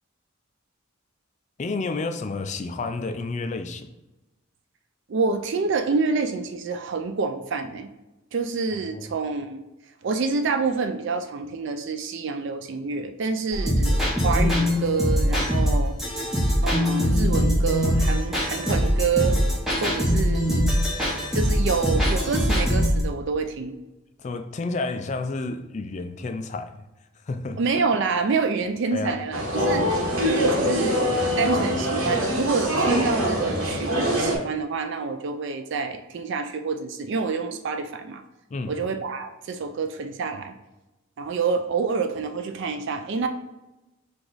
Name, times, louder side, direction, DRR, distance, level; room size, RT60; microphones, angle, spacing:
voice 1, 1.6-3.9 8.9-9.0 19.8-20.0 24.2-26.8 27.3-27.6 28.9-29.2 29.5-29.9 38.5-38.8, left 3 dB, 35° left, 0.3 m, -30 dB
voice 2, 5.1-7.9 8.3-9.6 10.0-15.9 16.6-19.4 19.8-20.7 21.3-23.8 27.6-29.8 30.2-31.0 31.4-38.2 38.7-40.5 41.2-43.3, right 4 dB, 55° right, 0.4 m, -27 dB
sound 1, 13.5-23.0, equal, ahead, 1.0 m, -22 dB
sound 2, 29.3-34.4, equal, 85° right, 1.4 m, -24 dB
4.8 x 2.5 x 3.9 m
head